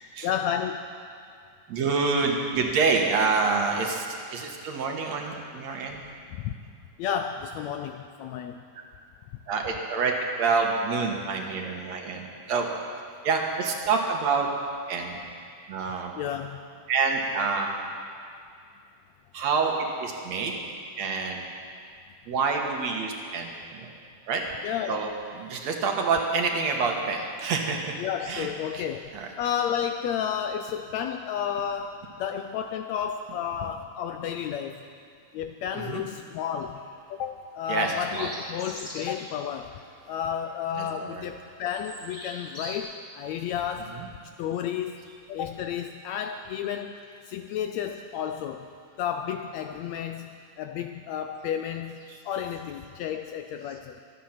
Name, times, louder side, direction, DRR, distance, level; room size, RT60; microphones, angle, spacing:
voice 1, 0.2-0.9 6.3-6.5 7.0-8.6 15.1-15.2 16.2-16.6 20.1-20.3 24.6-25.1 28.0-29.1 29.4-31.9 32.2-34.8 35.3-36.8 37.1-39.8 40.1-44.0 44.4-45.0 45.3-46.9 47.3-48.7 49.0-52.0 52.2-54.0, left 8 dB, 80° left, 6 dB, 1.6 m, -32 dB
voice 2, 1.7-4.1 4.3-6.0 9.5-12.7 13.2-14.5 14.9-15.2 15.7-16.1 16.9-17.7 19.3-19.7 20.0-20.6 21.0-21.5 22.3-23.9 24.3-24.4 24.9-25.1 25.3-28.0 28.3-28.5 28.7-28.8 29.1-29.3 35.7-36.0 37.7-38.3 40.8-41.3 43.9-44.1 52.1-52.2, right 4 dB, 65° right, 2 dB, 2.4 m, -27 dB
sound 1, 36.6-36.9 37.7-39.3 39.7-39.9 40.3-41.0 41.3-42.7, equal, 20° left, 3.9 m, -42 dB
24.5 x 9.3 x 5.8 m, 2.3 s
omnidirectional pair, 3.6 m